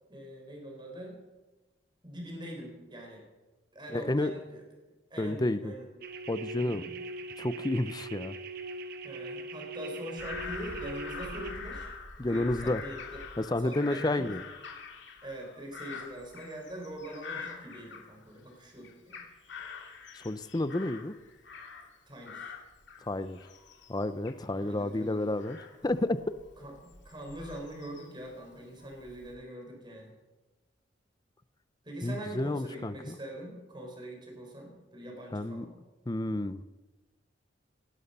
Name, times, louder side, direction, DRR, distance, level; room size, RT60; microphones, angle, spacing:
voice 1, 0.1-1.2 2.0-3.2 3.7-4.6 5.1-5.9 6.6-7.0 9.0-11.9 12.3-13.2 13.6-14.3 15.2-19.2 22.1-22.5 24.6-25.2 26.6-30.1 31.8-35.8, right 1 dB, 25° right, 1 dB, 4.0 m, -43 dB
voice 2, 3.9-4.3 5.2-5.7 6.3-6.8 7.4-8.4 12.2-12.8 13.4-14.4 20.1-21.1 23.1-23.4 23.9-25.6 25.8-26.2 32.0-33.2 35.3-35.7 36.1-36.6, left 1 dB, 20° left, 14 dB, 0.6 m, -30 dB
sound 1, 6.0-11.5, right 2 dB, 55° right, 1.1 m, -41 dB
Bird vocalization bird call bird song / Crow, 10.2-18.5 18.8-22.0 22.2-28.3 28.8-29.4, left 5 dB, 70° left, 2.6 m, -45 dB
18.5 x 11.0 x 5.5 m, 1.1 s
head